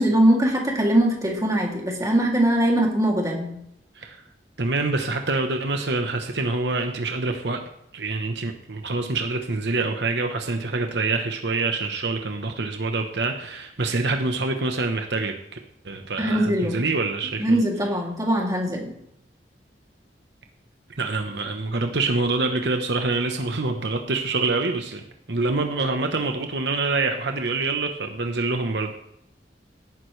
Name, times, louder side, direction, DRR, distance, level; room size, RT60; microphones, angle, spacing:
voice 1, 0.0-3.5 16.2-16.8 17.4-18.9, right 1 dB, 20° right, -2 dB, 2.8 m, -21 dB
voice 2, 4.6-7.6 7.9-15.6 15.8-17.6 21.0-28.9, right 3 dB, 75° right, 4 dB, 1.1 m, -26 dB
17.0 x 9.4 x 3.3 m, 0.78 s
head